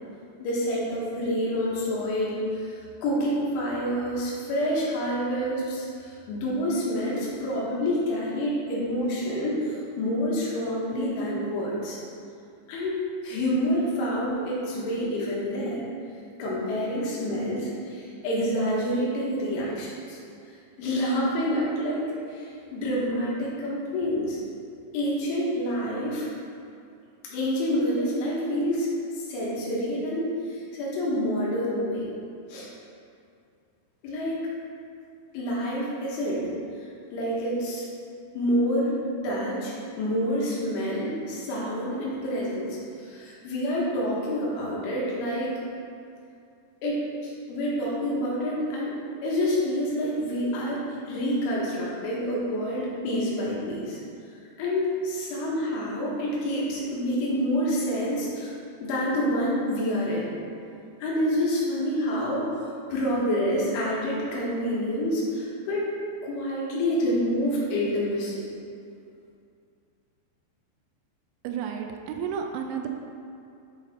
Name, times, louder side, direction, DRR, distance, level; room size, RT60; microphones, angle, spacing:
voice 1, 0.4-12.0 12.7-15.8 16.4-20.2 20.8-24.4 24.9-26.3 27.3-28.9 29.2-32.1 32.5-32.7 34.0-34.4 35.3-36.5 36.8-37.9 38.3-39.0 39.2-45.6 46.8-54.0 54.6-58.5 58.8-60.3 61.0-65.9 66.2-68.5, equal, 85° left, -5 dB, 3.9 m, -28 dB
voice 2, 71.4-72.9, right 7 dB, 85° right, 4 dB, 2.8 m, -32 dB
9.7 x 4.4 x 4.3 m, 2.5 s
omnidirectional pair, 5.4 m